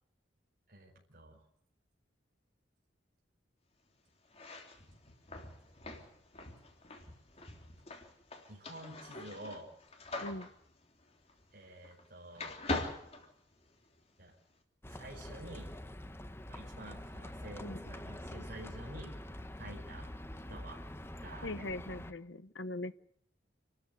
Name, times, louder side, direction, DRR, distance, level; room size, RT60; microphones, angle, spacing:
voice 1, 0.7-1.4 8.5-9.7 11.5-12.6 14.2-14.3 14.9-15.7 16.5-19.1 19.6-20.1 20.5-20.8 21.2-21.7, right 1 dB, 55° right, -1 dB, 5.2 m, -49 dB
sound 1, 4.3-12.1 12.4-14.0, left 2 dB, 35° left, 3.5 m, -43 dB
Livestock farm animals working animals, 14.8-22.1, left 1 dB, 15° left, 1.1 m, -46 dB
voice 2, 21.4-23.0, left 2 dB, 70° left, 13 dB, 1.1 m, -41 dB
28.5 x 13.5 x 8.3 m, 0.67 s
head